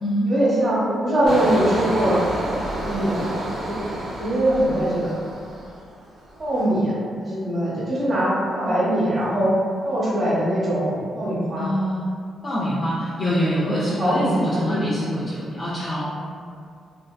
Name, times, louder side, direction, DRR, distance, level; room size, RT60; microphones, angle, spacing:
voice 1, 0.2-2.2 2.7-5.1 6.4-6.9 7.2-9.5 9.8-11.7 13.7-14.8, right 1 dB, 40° right, -8 dB, 1.1 m, -22 dB
Engine, 1.3-5.9 6.3-6.6, right 1 dB, 65° right, 0.5 m, -29 dB
voice 2, 11.6-12.1 12.4-16.0, equal, 45° left, -9 dB, 0.5 m, -25 dB
2.6 x 2.1 x 2.3 m, 2.2 s
supercardioid pair, 60°, 0 cm